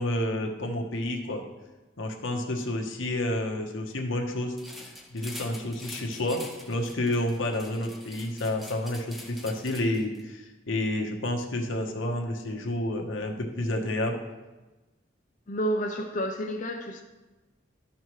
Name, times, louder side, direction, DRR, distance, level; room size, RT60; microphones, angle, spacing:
voice 1, 0.0-1.4 2.0-4.5 5.1-14.2, left 1 dB, 85° left, 2 dB, 1.1 m, -30 dB
sound 1, 4.6-10.2, left 1 dB, ahead, 0.6 m, -45 dB
voice 2, 15.5-17.0, equal, 40° left, 1 dB, 0.6 m, -30 dB
12.5 x 5.5 x 3.1 m, 1.1 s
head